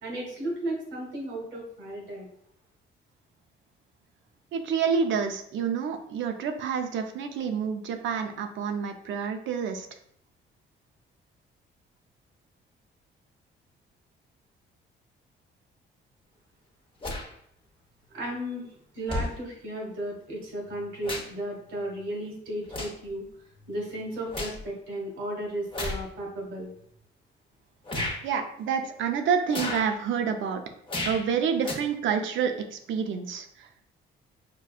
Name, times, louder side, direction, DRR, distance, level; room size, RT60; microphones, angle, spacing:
voice 1, 0.0-2.3 18.1-18.6 18.9-23.2 23.7-26.7, right 1 dB, 90° right, -1 dB, 1.3 m, -34 dB
voice 2, 4.5-9.9 28.2-30.6 31.0-33.7, right 6 dB, 75° right, 6 dB, 0.5 m, -28 dB
sound 1, 17.0-17.3 18.3-18.4 19.1-19.4 20.6-21.4 21.8-22.0 22.7-23.1 23.5-24.6 25.7-26.1 26.8-26.9 27.9-28.2 29.5-29.9 30.9-31.3 31.6-31.7, left 2 dB, 25° left, 0.8 m, -33 dB
5.1 x 2.2 x 2.4 m, 0.67 s
cardioid pair, 90°, 20 cm